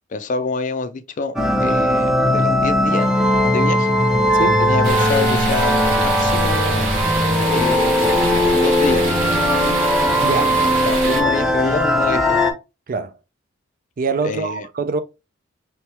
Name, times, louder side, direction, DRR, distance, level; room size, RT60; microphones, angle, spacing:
voice 1, 0.1-3.1 3.4-4.0 4.6-6.9 7.5-8.3 8.5-9.2 10.8-12.5 14.2-14.7, left 4 dB, 40° left, 0.4 m, -26 dB
sound 1, 1.4-12.5, equal, 5° right, 0.6 m, -18 dB
voice 2, 4.3-4.6 10.2-10.6 12.9-13.1 14.0-15.0, right 4 dB, 45° right, 0.4 m, -24 dB
sound 2, 4.8-11.2, right 2 dB, 85° right, 1.7 m, -25 dB
3.5 x 2.9 x 3.2 m
head